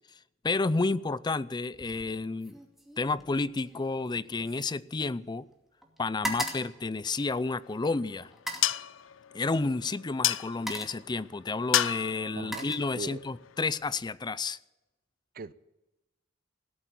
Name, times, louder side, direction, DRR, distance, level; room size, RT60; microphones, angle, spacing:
voice 1, 0.4-2.6 3.0-5.4 6.0-8.3 9.3-14.6, left 3 dB, 20° left, 0.4 m, -31 dB
sound 1, 1.7-2.1 2.4-5.5 5.8-7.7 8.3-8.8 9.8-10.0 10.4-11.1 12.0-13.3 13.7-14.1, equal, ahead, 2.4 m, -40 dB
sound 2, 7.4-13.9, left 12 dB, 75° left, 0.5 m, -34 dB
voice 2, 12.4-12.7 13.0-13.2 15.3-15.5, right 4 dB, 50° right, 0.5 m, -39 dB
17.5 x 8.4 x 9.2 m
head